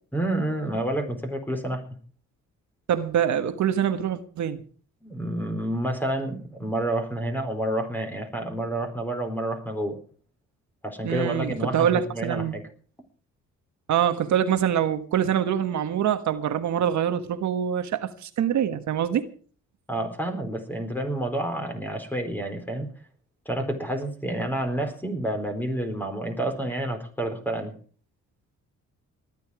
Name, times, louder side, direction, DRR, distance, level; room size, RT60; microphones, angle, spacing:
voice 1, 0.1-1.8 5.0-10.0 10.8-12.6 19.9-22.9 23.5-27.7, right 1 dB, 5° left, 4.2 m, -29 dB
voice 2, 2.9-4.6 11.0-12.5 13.9-19.2, right 9 dB, 70° right, 1.5 m, -25 dB
19.0 x 11.5 x 5.0 m
cardioid pair, 90°, 30 cm